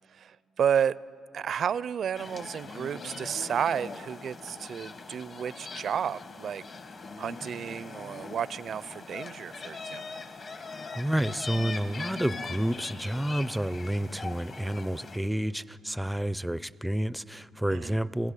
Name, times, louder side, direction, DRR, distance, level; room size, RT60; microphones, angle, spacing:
voice 1, 0.2-1.0 1.3-6.6 7.2-10.0 17.7-18.0, right 8 dB, 60° right, 19 dB, 0.5 m, -31 dB
sound 1, 2.1-15.2, left 4 dB, 45° left, 1.6 m, -41 dB
voice 2, 11.0-18.3, right 1 dB, 5° right, 18 dB, 0.5 m, -30 dB
27.5 x 17.0 x 8.3 m, 2.4 s
cardioid pair, 90°, 0 cm